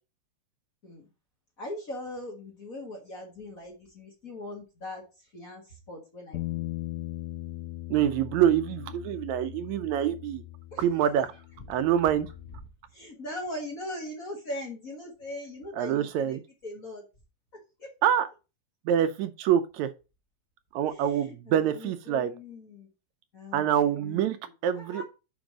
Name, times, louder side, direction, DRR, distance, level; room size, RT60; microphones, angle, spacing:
voice 1, 1.6-5.0 5.3-6.6 10.7-10.9 12.9-17.0 17.8-17.9 20.9-22.9 23.3-25.0, left 1 dB, 35° left, 1.6 m, -40 dB
Bass guitar, 6.3-12.6, left 17 dB, 80° left, 1.3 m, -39 dB
voice 2, 7.9-10.4 10.8-11.3 11.7-12.3 15.8-16.4 18.0-18.3 18.9-19.9 20.7-22.3 23.5-24.4 24.6-25.0, right 10 dB, 80° right, 1.9 m, -25 dB
5.3 x 5.0 x 6.0 m
omnidirectional pair, 3.4 m